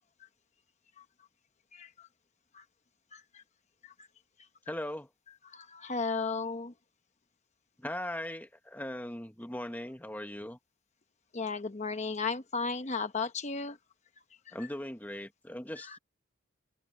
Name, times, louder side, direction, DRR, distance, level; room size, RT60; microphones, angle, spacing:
voice 1, 1.7-2.1 2.5-2.6 3.1-3.4 3.8-3.9 5.5-6.7 11.3-13.8 14.5-14.6 15.9-16.0, left 4 dB, 35° left, 1.0 m, -35 dB
voice 2, 4.7-5.1 7.8-10.6 14.5-16.0, left 1 dB, 10° left, 1.1 m, -39 dB
head